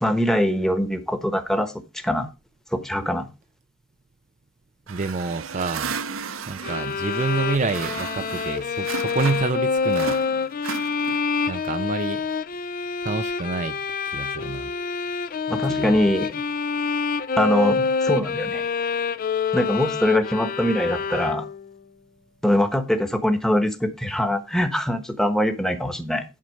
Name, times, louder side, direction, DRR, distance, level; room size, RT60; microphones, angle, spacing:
voice 1, 0.0-2.3 2.7-3.3 15.5-16.4 17.4-18.7 19.5-21.5 22.4-26.2, equal, 5° left, 1.1 m, -23 dB
voice 2, 4.9-5.9 6.5-10.2 11.5-12.3 13.0-13.8 14.1-14.7 15.7-16.0, right 4 dB, 35° right, 0.5 m, -28 dB
sound 1, 4.9-9.6 9.9-11.4, right 6 dB, 70° right, 0.8 m, -34 dB
sound 2, 6.6-21.7, left 5 dB, 40° left, 0.5 m, -27 dB
11.0 x 4.2 x 6.4 m
head